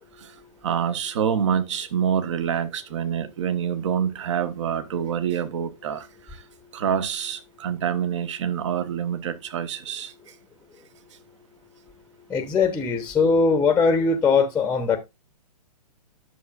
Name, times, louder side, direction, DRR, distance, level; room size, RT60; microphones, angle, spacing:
voice 1, 0.6-6.1 6.7-10.1, right 8 dB, 50° right, 1.3 m, -26 dB
voice 2, 12.3-15.0, left 4 dB, 10° left, 0.9 m, -20 dB
11.0 x 6.8 x 2.5 m
figure-of-eight pair, 120°, 20 cm